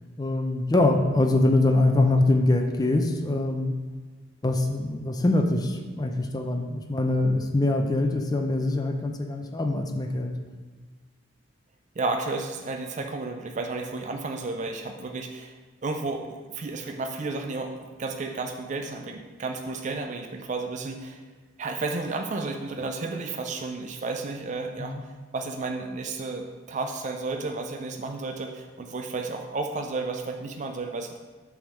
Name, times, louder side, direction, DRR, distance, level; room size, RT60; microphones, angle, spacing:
voice 1, 0.2-3.7 4.4-10.3 24.8-25.0, left 2 dB, 20° left, 4 dB, 0.6 m, -23 dB
voice 2, 12.0-15.6 15.8-21.2 21.6-24.9 25.3-31.2, right 3 dB, 40° right, 4 dB, 0.4 m, -32 dB
7.5 x 3.6 x 6.2 m, 1.4 s
head